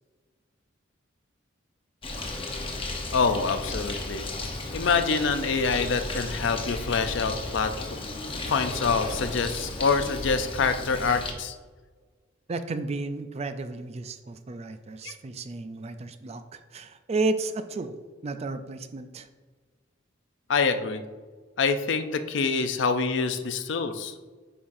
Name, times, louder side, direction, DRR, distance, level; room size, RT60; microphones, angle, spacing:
Bird, 2.0-11.3, left 2 dB, 25° left, 0.7 m, -34 dB
voice 1, 3.1-4.3 4.7-7.9 8.4-11.6 15.0-15.1 20.5-21.0 21.6-24.1, left 5 dB, 60° left, 8 dB, 0.5 m, -26 dB
voice 2, 12.5-18.0 18.2-19.3, right 3 dB, 30° right, 10 dB, 0.4 m, -32 dB
8.5 x 5.6 x 2.6 m, 1.4 s
head